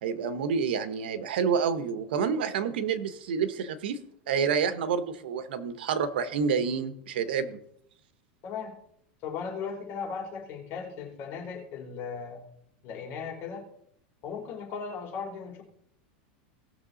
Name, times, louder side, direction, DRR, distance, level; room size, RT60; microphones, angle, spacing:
voice 1, 0.0-7.6, right 6 dB, 85° right, 11 dB, 1.2 m, -28 dB
voice 2, 8.4-8.7 9.2-12.4 12.8-13.6 14.2-15.6, left 6 dB, 45° left, 0 dB, 3.8 m, -37 dB
18.0 x 6.5 x 4.1 m, 0.70 s
supercardioid pair, 140°, 5 cm